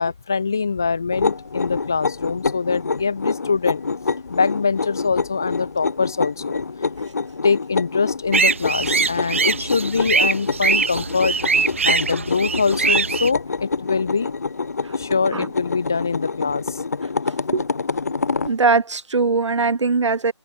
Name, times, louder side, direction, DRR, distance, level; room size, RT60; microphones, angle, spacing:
voice 1, 0.0-3.9 4.3-6.6 7.4-11.4 11.8-14.3 15.0-16.8, left 5 dB, 5° left, 0.6 m, -23 dB
sound 1, 1.1-18.5, left 4 dB, 35° left, 1.2 m, -27 dB
sound 2, 8.3-13.3, right 5 dB, 25° right, 1.3 m, -22 dB
voice 2, 18.5-20.3, right 4 dB, 75° right, 0.6 m, -20 dB
figure-of-eight pair, 170°, 15 cm